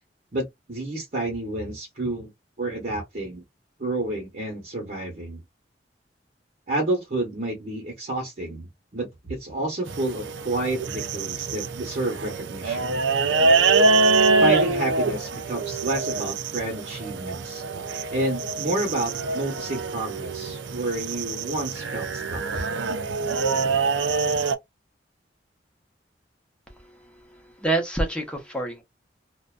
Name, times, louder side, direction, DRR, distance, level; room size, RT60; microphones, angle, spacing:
voice 1, 0.3-2.3 2.6-3.4 3.8-5.4 6.7-13.0 14.4-17.6 18.1-22.7, right 2 dB, 45° right, 0.8 m, -30 dB
sound 1, 9.9-24.5, right 3 dB, 85° right, 0.4 m, -25 dB
voice 2, 27.3-28.8, right 2 dB, 5° left, 0.7 m, -27 dB
2.5 x 2.1 x 2.3 m
head